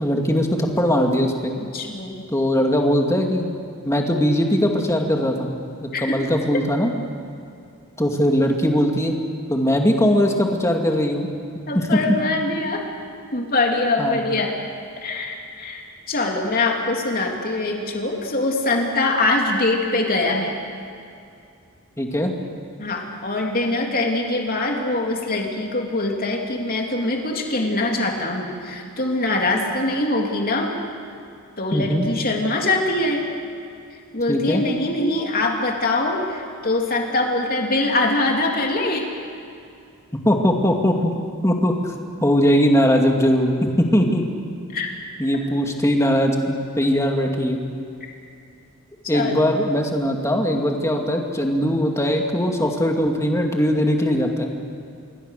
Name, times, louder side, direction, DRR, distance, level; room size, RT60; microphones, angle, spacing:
voice 1, 0.0-1.5 2.3-3.5 3.8-5.5 5.7-6.9 8.0-9.2 9.5-11.3 11.7-11.9 14.0-14.2 22.0-22.3 31.7-32.1 34.3-34.6 40.2-41.1 41.4-41.7 42.2-44.2 45.2-47.6 49.1-54.5, equal, 15° left, 2 dB, 2.4 m, -20 dB
voice 2, 1.6-2.2 5.9-6.1 11.7-12.8 13.3-14.5 15.0-20.6 22.8-30.7 31.6-33.2 34.1-39.0 44.7-44.9 49.1-49.4, left 2 dB, 45° left, 1 dB, 3.3 m, -23 dB
27.5 x 23.0 x 6.8 m, 2.5 s
head